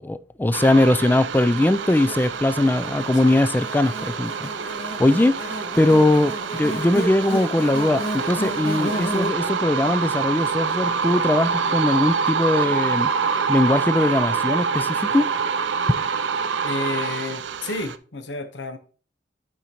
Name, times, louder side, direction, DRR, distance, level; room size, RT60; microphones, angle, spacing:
voice 1, 0.0-4.5 5.0-13.1 13.5-15.3, left 1 dB, 10° left, 0.3 m, -20 dB
sound 1, 0.5-18.0, right 6 dB, 85° right, 0.5 m, -26 dB
Buzz, 1.3-11.7, equal, 60° left, 2.1 m, -33 dB
voice 2, 16.6-18.8, left 2 dB, 85° left, 1.0 m, -31 dB
11.0 x 5.0 x 2.9 m
head